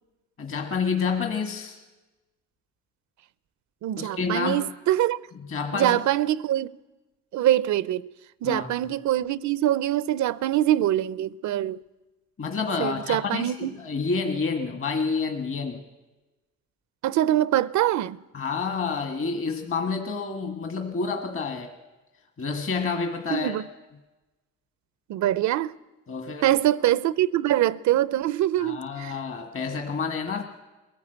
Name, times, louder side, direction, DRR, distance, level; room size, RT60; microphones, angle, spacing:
voice 1, 0.4-1.8 4.0-4.6 5.5-6.0 8.4-8.7 12.4-15.8 18.3-21.7 22.4-23.6 26.1-26.5 28.6-30.4, left 5 dB, 45° left, 1.7 m, -29 dB
voice 2, 3.8-5.2 5.7-6.7 7.3-8.1 8.4-11.8 12.8-13.7 17.0-18.2 23.3-23.6 25.1-25.7 26.4-29.1, right 13 dB, 70° right, 0.6 m, -24 dB
22.0 x 15.5 x 8.0 m
cardioid pair, 90°, 30 cm